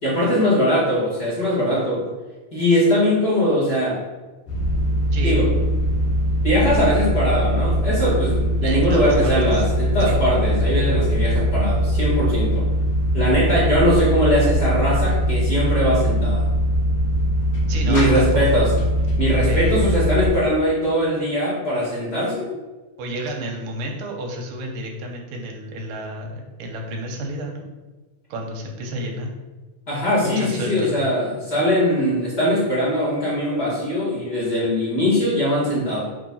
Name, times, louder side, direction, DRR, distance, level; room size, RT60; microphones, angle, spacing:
voice 1, 0.0-2.0 2.5-4.0 5.2-5.5 6.4-12.7 13.1-16.5 17.8-18.7 19.2-22.5 29.9-36.0, equal, 35° left, -7 dB, 2.0 m, -21 dB
sound 1, 4.5-20.3, equal, 75° left, 2.8 m, -21 dB
voice 2, 8.6-9.6 10.0-10.2 17.7-18.7 19.4-19.8 23.0-27.7 28.3-29.3 30.2-30.9, right 1 dB, 85° right, 1 dB, 2.6 m, -30 dB
6.6 x 2.9 x 5.5 m, 1.2 s
omnidirectional pair, 3.7 m